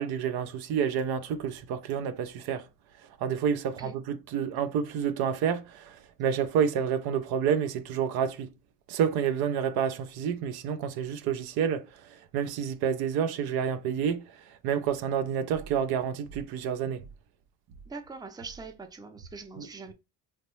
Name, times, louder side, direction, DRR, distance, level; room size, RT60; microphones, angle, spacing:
voice 1, 0.0-2.6 3.2-8.5 8.9-11.9 12.1-14.2 14.6-17.0 19.6-19.7, right 8 dB, 75° right, 0.6 m, -29 dB
voice 2, 3.6-3.9 17.9-19.9, right 4 dB, 10° right, 0.5 m, -43 dB
3.0 x 2.2 x 3.0 m
supercardioid pair, 85°, 38 cm